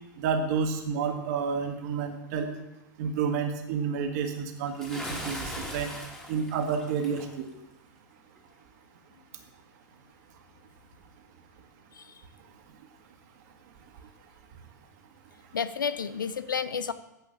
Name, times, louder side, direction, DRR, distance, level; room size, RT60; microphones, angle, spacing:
voice 1, 0.2-2.5 3.0-5.9 6.3-7.5, right 6 dB, 55° right, 5 dB, 1.6 m, -30 dB
Bathtub (filling or washing) / Splash splatter, 4.8-7.3, equal, 5° left, 2.0 m, -39 dB
voice 2, 15.5-16.9, left 6 dB, 85° left, 14 dB, 0.6 m, -31 dB
9.4 x 5.6 x 7.2 m, 0.94 s
hypercardioid pair, 105°, 10 cm